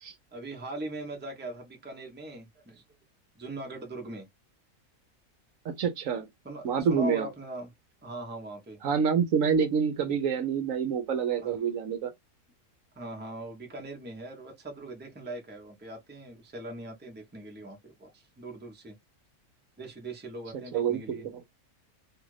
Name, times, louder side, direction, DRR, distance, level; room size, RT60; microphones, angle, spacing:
voice 1, 0.3-2.8 3.3-4.3 6.4-7.7 8.0-8.8 11.4-11.6 12.9-19.0 19.8-21.3, right 2 dB, 10° right, 0.6 m, -40 dB
voice 2, 5.6-6.3 6.6-7.3 8.8-12.1 20.7-21.4, right 6 dB, 70° right, 1.0 m, -27 dB
2.8 x 2.5 x 3.1 m
omnidirectional pair, 1.6 m